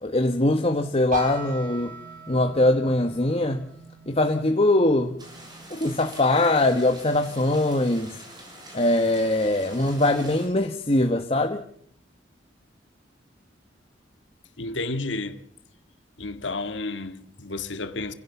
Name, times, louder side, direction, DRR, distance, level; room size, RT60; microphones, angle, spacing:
voice 1, 0.0-1.9 2.3-3.6 4.1-5.2 5.7-8.2 8.7-11.6, left 2 dB, 30° left, 1.4 m, -22 dB
sound 1, 1.1-6.9, right 2 dB, 45° right, 5.9 m, -40 dB
sound 2, 5.2-10.5, right 1 dB, 25° right, 7.3 m, -45 dB
voice 2, 14.6-15.4 16.2-18.1, left 2 dB, 75° left, 2.1 m, -31 dB
28.0 x 17.0 x 7.2 m
head